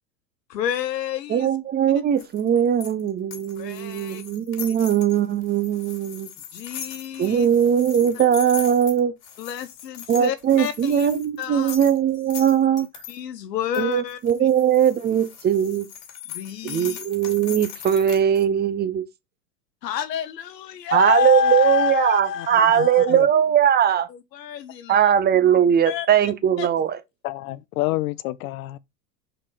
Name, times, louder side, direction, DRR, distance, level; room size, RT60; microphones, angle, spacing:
voice 1, 0.5-1.5 3.6-4.2 6.5-7.5 9.4-11.1 11.4-11.7 13.1-14.5 16.3-17.0 19.8-23.2 24.1-25.1 25.9-26.1 26.6-26.7 27.8-28.0, left 7 dB, 75° left, 1.2 m, -28 dB
voice 2, 1.3-6.3 7.2-9.1 10.1-12.9 13.8-15.9 16.6-19.0 20.9-24.1 24.9-27.0, right 9 dB, 20° right, 0.7 m, -20 dB
sound 1, 2.2-13.2 13.7-18.4, left 9 dB, 40° left, 2.6 m, -39 dB
voice 3, 22.8-23.3 27.2-28.8, left 18 dB, 60° left, 0.7 m, -28 dB
5.2 x 4.3 x 5.0 m
hypercardioid pair, 105°, 50 cm